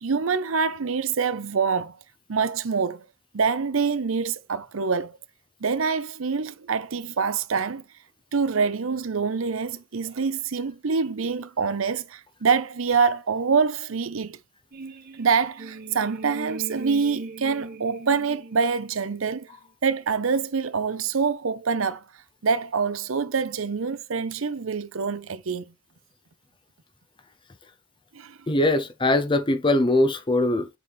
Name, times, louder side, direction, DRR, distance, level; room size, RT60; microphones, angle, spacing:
voice 1, 0.0-1.9 2.3-3.0 3.3-5.2 5.6-7.8 8.3-14.4 15.2-19.5 19.8-22.0 22.4-25.7 28.1-28.4, right 5 dB, 80° right, 0.7 m, -25 dB
sound 1, 14.7-19.5, right 3 dB, 45° right, 1.5 m, -39 dB
voice 2, 28.5-30.7, left 1 dB, 25° left, 0.6 m, -21 dB
7.9 x 4.1 x 3.4 m
head